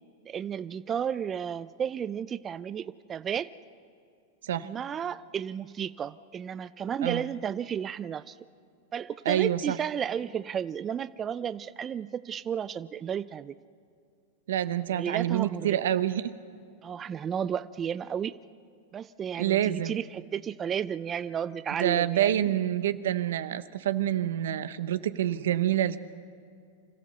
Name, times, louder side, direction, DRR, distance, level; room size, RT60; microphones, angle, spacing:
voice 1, 0.2-3.5 4.6-8.4 8.9-13.6 14.9-15.8 16.8-18.3 18.9-22.5, right 8 dB, 25° right, 14 dB, 0.4 m, -33 dB
voice 2, 9.2-9.8 14.5-16.3 19.4-20.0 21.8-26.0, right 11 dB, 80° right, 13 dB, 0.9 m, -27 dB
26.0 x 14.5 x 6.8 m, 2.4 s
hypercardioid pair, 120°, 0 cm